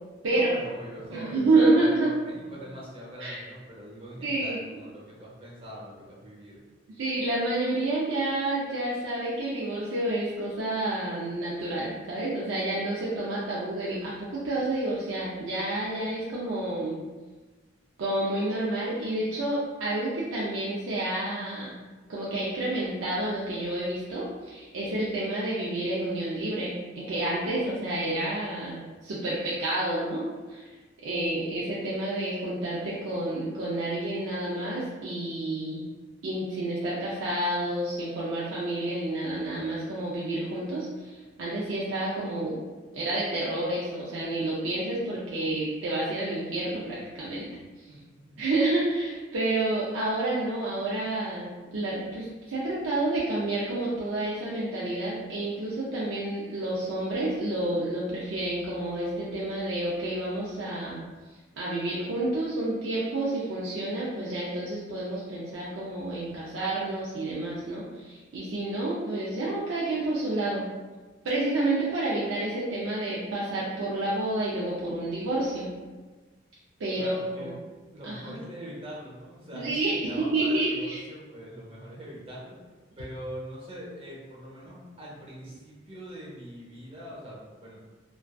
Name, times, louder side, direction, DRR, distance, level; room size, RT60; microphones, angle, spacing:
voice 1, 0.3-6.6 47.9-48.0 48.3-48.4 76.9-77.5 77.9-82.6 83.0-87.8, equal, 30° right, -6 dB, 0.7 m, -42 dB
voice 2, 1.1-2.1 3.2-3.4 4.2-4.6 7.0-17.0 18.0-21.8 22.1-30.7 31.0-35.9 36.2-42.6 42.9-47.5 47.8-47.9 48.4-61.0 61.6-70.7 71.2-75.7 76.8-77.5 78.0-78.4 79.5-81.0, right 2 dB, 85° right, -7 dB, 0.5 m, -29 dB
2.5 x 2.3 x 2.2 m, 1.3 s
head